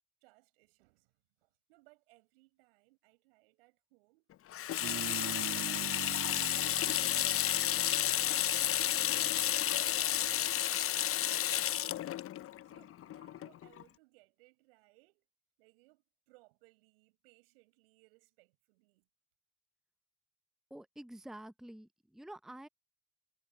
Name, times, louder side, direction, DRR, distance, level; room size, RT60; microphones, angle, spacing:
voice 1, 0.2-4.3 4.9-7.2 8.1-9.4 9.9-12.1 12.6-15.3 15.6-19.1, right 25 dB, 75° right, 7.4 m, -67 dB
Water tap faucet / Sink (filling or washing), 4.5-13.8, left 12 dB, 45° left, 0.9 m, -32 dB
sound 1, 4.8-10.6, right 12 dB, 55° right, 2.2 m, -46 dB
voice 2, 20.7-22.7, right 1 dB, ahead, 0.9 m, -49 dB
figure-of-eight pair, 45°, 30 cm